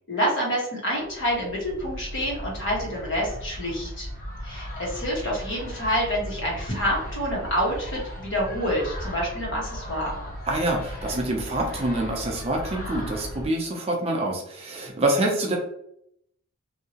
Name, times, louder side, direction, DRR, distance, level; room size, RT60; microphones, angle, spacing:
voice 1, 0.1-4.1 4.4-10.2, equal, 60° left, -3 dB, 1.3 m, -27 dB
sound 1, 1.0-13.5, equal, 40° left, 0.8 m, -37 dB
voice 2, 10.5-15.6, right 1 dB, 30° right, 0 dB, 0.6 m, -26 dB
2.8 x 2.7 x 2.8 m, 0.72 s
head